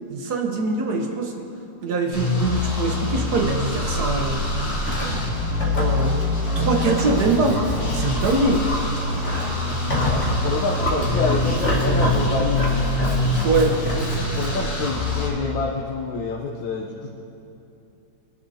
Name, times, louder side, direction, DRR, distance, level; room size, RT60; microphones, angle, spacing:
voice 1, 0.1-1.5 1.8-4.4 5.7-6.2 6.5-7.6 7.9-8.6 13.4-13.9, right 3 dB, 60° right, 3 dB, 1.5 m, -23 dB
sound 1, 2.1-15.3, left 1 dB, 70° left, 3.3 m, -25 dB
Livestock farm animals working animals, 2.9-14.6, left 1 dB, 35° left, 2.3 m, -29 dB
voice 2, 9.7-12.9 14.3-17.1, left 4 dB, 85° left, -2 dB, 1.6 m, -27 dB
22.5 x 10.5 x 2.8 m, 2.8 s
omnidirectional pair, 2.0 m